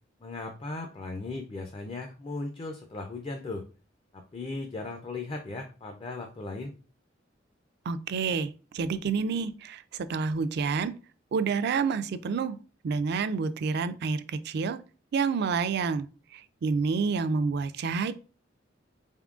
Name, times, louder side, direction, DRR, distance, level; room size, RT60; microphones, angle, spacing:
voice 1, 0.2-3.7 4.1-6.7, left 3 dB, 30° left, 3 dB, 0.4 m, -37 dB
voice 2, 7.9-9.8 10.1-10.9 11.3-12.6 12.8-14.2 14.5-14.8 15.1-16.1 16.6-18.1, right 5 dB, 60° right, 13 dB, 0.3 m, -28 dB
4.3 x 3.6 x 2.4 m, 0.36 s
head